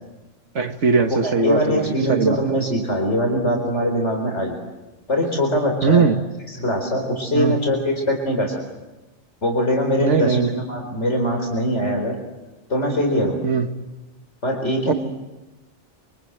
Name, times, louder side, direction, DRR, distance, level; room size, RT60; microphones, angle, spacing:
voice 1, 0.6-2.4 5.8-6.2 7.4-7.6 10.0-10.6 13.4-13.7 14.9-15.0, right 5 dB, 75° right, 7 dB, 1.9 m, -20 dB
voice 2, 1.1-4.6 5.1-6.1 6.5-8.6 9.4-12.2 12.7-13.4 14.4-14.9, equal, 75° left, 2 dB, 4.7 m, -22 dB
28.0 x 26.0 x 8.0 m, 1.1 s
omnidirectional pair, 1.2 m